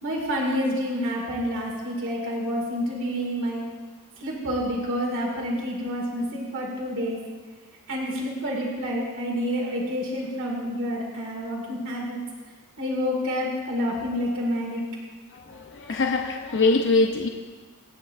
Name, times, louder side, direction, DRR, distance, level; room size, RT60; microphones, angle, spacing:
voice 1, 0.0-3.6 4.2-7.2 7.9-12.2 12.8-14.8 15.9-16.0, equal, 60° right, -2 dB, 2.1 m, -28 dB
voice 2, 15.3-17.3, left 3 dB, 55° left, 3 dB, 0.7 m, -23 dB
25.5 x 9.0 x 2.6 m, 1.4 s
head